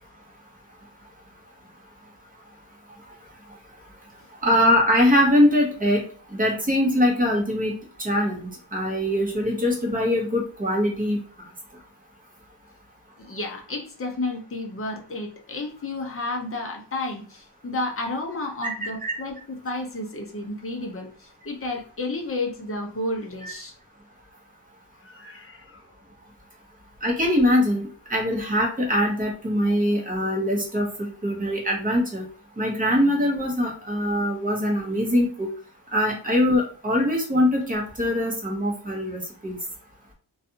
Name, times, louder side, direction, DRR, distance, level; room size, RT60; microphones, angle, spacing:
voice 1, 4.4-6.0 6.4-11.2 18.6-18.7 19.0-19.2 23.4-23.5 27.0-32.3 32.6-35.5 35.9-39.6, left 1 dB, 20° right, -1 dB, 0.9 m, -22 dB
voice 2, 13.2-23.7 25.0-25.8, left 2 dB, 30° left, 1 dB, 0.6 m, -32 dB
2.5 x 2.3 x 2.7 m, 0.41 s
wide cardioid pair, 125°, 44 cm